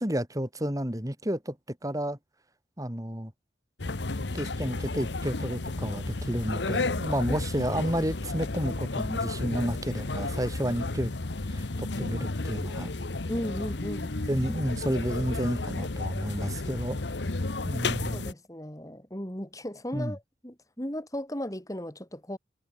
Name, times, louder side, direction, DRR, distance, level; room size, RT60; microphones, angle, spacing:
voice 1, 0.0-2.2 2.8-3.3 4.3-11.1 11.5-12.9 14.3-17.0 17.6-18.3 19.9-20.1, equal, 20° right, 4.4 m, -31 dB
sound 1, 3.8-18.3, left 2 dB, 70° left, 1.2 m, -32 dB
voice 2, 13.3-14.2 17.8-22.4, equal, 20° left, 3.4 m, -36 dB
head